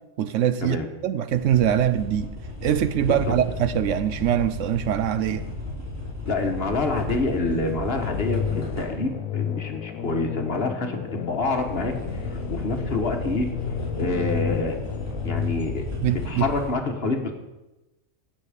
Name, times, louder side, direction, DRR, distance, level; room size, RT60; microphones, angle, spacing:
voice 1, 0.2-2.3 2.6-5.5 16.0-16.5, right 10 dB, 70° right, 0.9 m, -23 dB
sound 1, 1.3-9.1 11.4-16.7, left 2 dB, 10° right, 4.8 m, -33 dB
voice 2, 6.3-13.5 13.9-14.8 15.2-17.3, left 3 dB, 50° left, 1.4 m, -27 dB
sound 2, 8.0-15.5, left 9 dB, 90° left, 1.0 m, -32 dB
16.5 x 6.5 x 5.0 m
omnidirectional pair, 1.4 m